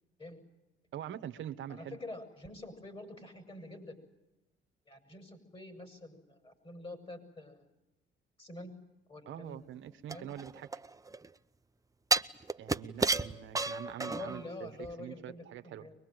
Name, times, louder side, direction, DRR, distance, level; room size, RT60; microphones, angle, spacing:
voice 1, 0.9-2.0 9.3-10.7 12.6-15.9, right 10 dB, 75° right, 8 dB, 1.3 m, -44 dB
voice 2, 1.7-4.0 4.9-7.6 8.4-8.7 9.1-9.6 10.1-10.3 14.0-15.9, left 2 dB, 25° left, 7 dB, 6.8 m, -47 dB
sound 1, 10.1-11.3 12.1-14.5 14.8-14.9, right 3 dB, 15° right, 0.8 m, -32 dB
24.0 x 21.0 x 9.3 m, 0.94 s
cardioid pair, 90°, 20 cm